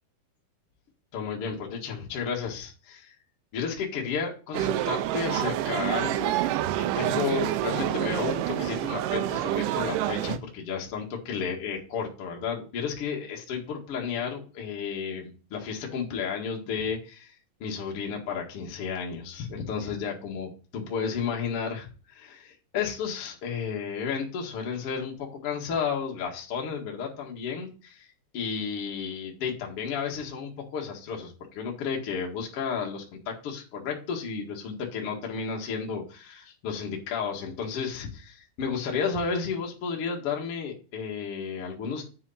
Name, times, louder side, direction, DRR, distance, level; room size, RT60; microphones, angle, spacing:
voice 1, 1.1-3.1 3.5-6.4 6.8-17.3 17.6-28.1 28.3-42.0, left 6 dB, 60° left, 0 dB, 1.5 m, -32 dB
sound 1, 4.5-10.4, right 13 dB, 85° right, 3.0 m, -27 dB
9.3 x 5.6 x 4.2 m, 0.36 s
omnidirectional pair, 5.6 m